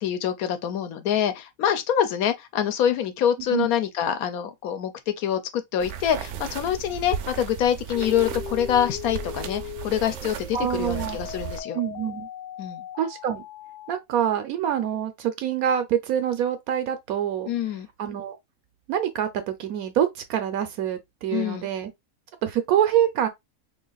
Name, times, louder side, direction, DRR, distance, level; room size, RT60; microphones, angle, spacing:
voice 1, 0.0-11.8 12.6-12.9 17.5-17.9 21.3-21.7, left 9 dB, 90° left, 1.1 m, -25 dB
sound 1, 5.8-11.6, right 8 dB, 65° right, 0.8 m, -35 dB
sound 2, 7.9-14.0, left 9 dB, 70° left, 0.9 m, -39 dB
voice 2, 10.5-11.2 11.7-12.3 13.0-13.4 13.9-17.5 18.0-18.4 18.9-21.9 22.4-23.3, right 10 dB, 85° right, 1.1 m, -25 dB
2.9 x 2.6 x 3.9 m
omnidirectional pair, 1.5 m